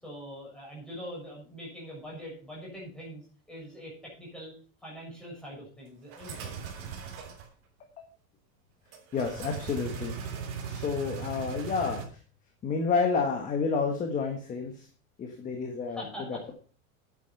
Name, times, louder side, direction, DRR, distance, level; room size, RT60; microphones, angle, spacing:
voice 1, 0.0-4.5 4.8-6.5 15.8-16.4, equal, ahead, -5 dB, 6.8 m, -43 dB
sound 1, 6.1-7.5 8.9-12.0, right 7 dB, 40° right, 3.4 m, -38 dB
voice 2, 9.1-10.1 10.6-12.0 12.6-14.9 15.2-16.0 16.3-16.5, left 5 dB, 20° left, 4 dB, 1.5 m, -30 dB
10.0 x 9.1 x 5.8 m, 0.39 s
supercardioid pair, 170°, 42 cm